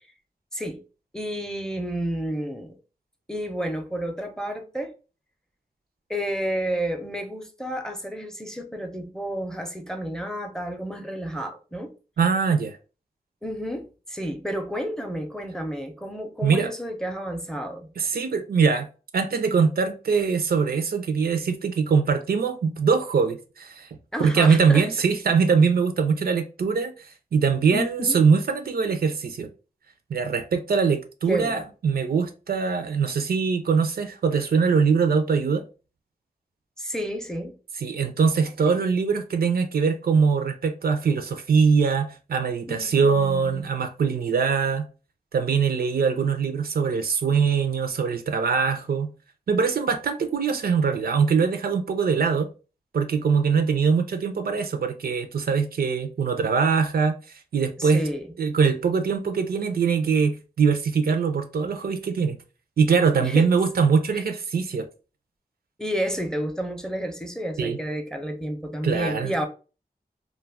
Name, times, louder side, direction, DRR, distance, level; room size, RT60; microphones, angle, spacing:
voice 1, 0.5-0.8 1.1-2.7 3.3-4.9 6.1-11.9 13.4-17.9 24.1-24.9 27.7-28.2 31.3-31.6 36.8-37.6 42.7-43.6 57.8-58.3 63.2-63.5 64.1-64.2 65.8-69.5, equal, 5° left, 0.5 m, -31 dB
voice 2, 12.2-12.8 16.4-16.7 18.0-18.9 19.1-23.9 24.2-29.5 30.1-35.6 37.8-44.9 45.3-49.1 49.5-52.5 52.9-57.1 57.5-58.0 58.4-62.4 62.8-64.9 67.6-67.8 68.8-69.5, right 5 dB, 70° right, 0.4 m, -22 dB
2.2 x 2.0 x 3.3 m
cardioid pair, 50°, 16 cm